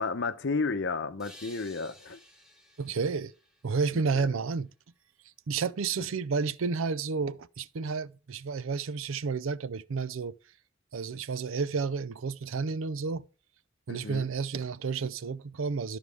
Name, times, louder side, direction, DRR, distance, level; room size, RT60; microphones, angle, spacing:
voice 1, 0.0-2.2 3.9-4.0 6.0-6.1 13.9-14.3, left 4 dB, 55° left, 0.7 m, -32 dB
sound 1, 1.2-4.7, left 1 dB, ahead, 1.3 m, -55 dB
voice 2, 2.8-3.3 3.6-4.7 5.5-10.3 10.9-13.3 13.9-16.0, right 5 dB, 70° right, 0.5 m, -31 dB
13.0 x 4.8 x 3.5 m
head